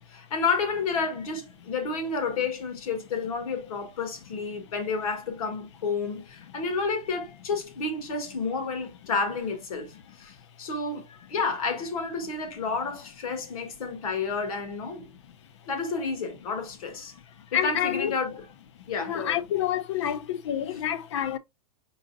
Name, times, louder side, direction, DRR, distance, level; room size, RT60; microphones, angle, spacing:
voice 1, 0.1-15.0 15.7-17.1 17.5-18.5 18.9-19.4 20.0-20.1 20.7-20.8, left 4 dB, 65° left, 1.6 m, -30 dB
voice 2, 17.5-18.1 19.0-21.4, left 10 dB, 50° left, 0.5 m, -28 dB
4.9 x 3.9 x 2.6 m
supercardioid pair, 180°, 20 cm